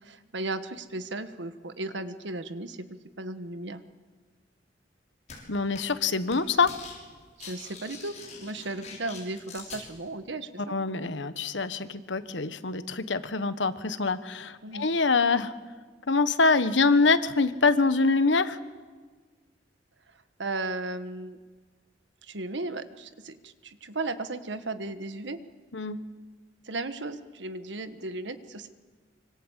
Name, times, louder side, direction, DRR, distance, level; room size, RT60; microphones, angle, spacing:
voice 1, 0.0-2.9 3.2-3.8 7.4-10.8 14.6-14.9 20.1-21.4 22.2-25.4 26.6-28.7, right 2 dB, 80° right, 10 dB, 1.5 m, -35 dB
sound 1, 5.3-5.4 5.7-6.0 6.3-7.0 7.2-9.8, left 5 dB, 40° left, 6.6 m, -44 dB
voice 2, 5.5-6.7 10.7-15.5 16.1-18.6 25.7-26.0, left 4 dB, 85° left, 12 dB, 1.3 m, -25 dB
25.0 x 25.0 x 8.3 m, 1.4 s
head